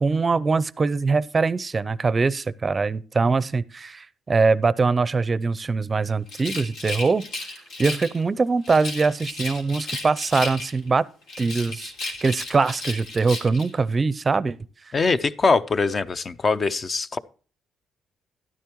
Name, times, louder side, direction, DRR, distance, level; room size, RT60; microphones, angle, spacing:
voice 1, 0.0-7.2 7.8-11.0 11.4-14.6, right 4 dB, 30° right, 0.5 m, -22 dB
Rattle, 6.3-8.2 8.6-10.9 11.3-13.7, left 2 dB, 80° left, 3.1 m, -34 dB
voice 2, 14.9-17.2, left 4 dB, 35° left, 0.6 m, -22 dB
12.5 x 10.5 x 3.0 m
cardioid pair, 90°, 0 cm